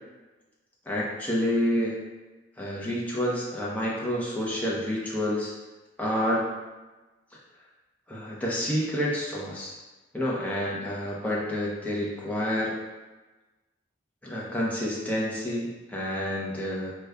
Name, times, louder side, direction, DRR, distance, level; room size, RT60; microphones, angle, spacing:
voice 1, 0.9-2.0 2.6-5.5 6.0-6.5 8.1-9.8 10.1-12.8 14.2-16.9, equal, 10° left, -5 dB, 0.6 m, -29 dB
4.9 x 2.2 x 2.2 m, 1.2 s
head